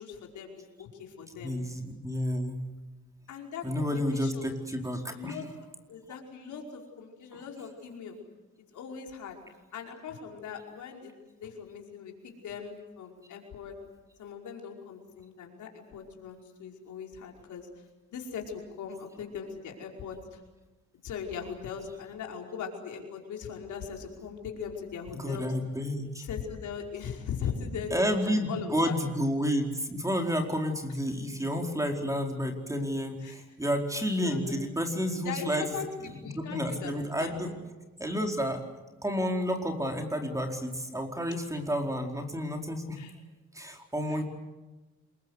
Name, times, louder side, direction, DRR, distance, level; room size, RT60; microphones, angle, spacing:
voice 1, 0.0-1.6 3.3-4.5 5.1-5.5 5.9-8.2 8.7-9.4 9.7-13.7 14.2-17.7 18.1-20.4 21.0-25.5 26.2-29.0 33.2-33.4 34.2-34.6 35.2-35.9 36.2-36.9 37.2-37.3 43.0-43.1 44.1-44.2, left 7 dB, 75° left, 1 dB, 5.2 m, -40 dB
voice 2, 1.4-2.7 3.6-5.5 7.3-7.4 25.1-26.3 27.9-37.5 38.0-38.6 39.0-43.0 43.5-44.2, equal, 10° right, 3 dB, 4.6 m, -31 dB
27.0 x 22.5 x 8.2 m, 1.1 s
cardioid pair, 90°, 30 cm